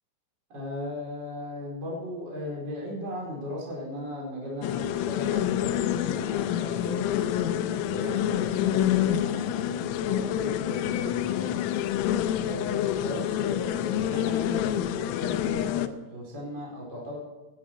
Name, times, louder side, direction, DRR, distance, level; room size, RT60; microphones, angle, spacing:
voice 1, 0.5-11.6 12.3-17.2, left 1 dB, 20° right, -3 dB, 4.6 m, -37 dB
sound 1, 4.6-15.9, left 11 dB, 85° left, 3.4 m, -27 dB
17.5 x 11.5 x 4.8 m, 1.1 s
omnidirectional pair, 6.0 m